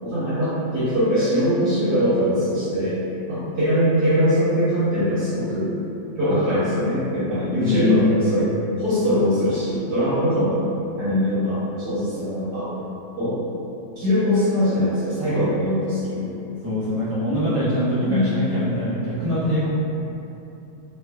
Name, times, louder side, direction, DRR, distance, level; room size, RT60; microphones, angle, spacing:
voice 1, 0.0-3.0 3.3-5.7 6.2-8.5 8.8-10.6 11.0-12.7 13.1-13.5 14.0-16.3 18.1-18.3, equal, 75° right, -13 dB, 1.5 m, -22 dB
voice 2, 7.6-8.3 16.6-19.7, left 1 dB, 20° right, -14 dB, 0.4 m, -23 dB
3.1 x 2.9 x 2.2 m, 2.9 s
omnidirectional pair, 1.8 m